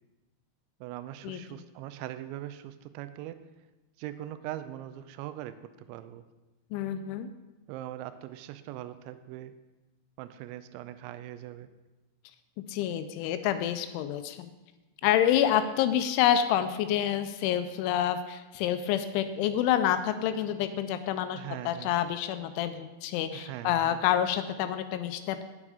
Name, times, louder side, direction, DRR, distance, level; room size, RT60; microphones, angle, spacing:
voice 1, 0.8-3.4 4.0-6.2 7.7-9.5 10.2-11.7 21.3-22.0 23.3-24.0, right 13 dB, 85° right, 11 dB, 2.9 m, -41 dB
voice 2, 6.7-7.3 12.7-14.5 15.0-25.4, left 10 dB, 85° left, 10 dB, 3.0 m, -28 dB
8.8 x 8.5 x 4.9 m, 1.1 s
omnidirectional pair, 5.4 m